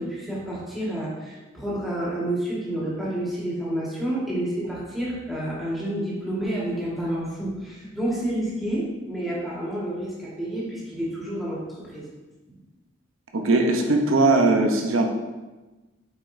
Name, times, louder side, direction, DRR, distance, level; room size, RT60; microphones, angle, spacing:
voice 1, 0.0-12.0, right 1 dB, ahead, -8 dB, 1.7 m, -29 dB
voice 2, 13.3-15.1, right 2 dB, 85° right, 3 dB, 0.8 m, -20 dB
7.1 x 5.0 x 2.7 m, 1.1 s
head